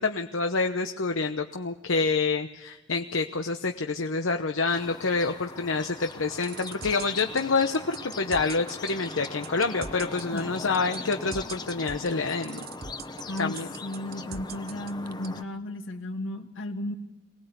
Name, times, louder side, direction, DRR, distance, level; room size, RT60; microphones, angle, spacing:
voice 1, 0.0-12.7 13.4-13.7, left 4 dB, 90° left, 6 dB, 1.0 m, -27 dB
sound 1, 4.7-15.4, left 2 dB, 20° left, 0.9 m, -41 dB
sound 2, 6.1-15.3, right 6 dB, 50° right, 0.7 m, -40 dB
voice 2, 13.8-16.9, left 1 dB, 75° left, 5 dB, 2.2 m, -34 dB
24.0 x 19.0 x 8.2 m, 0.95 s
head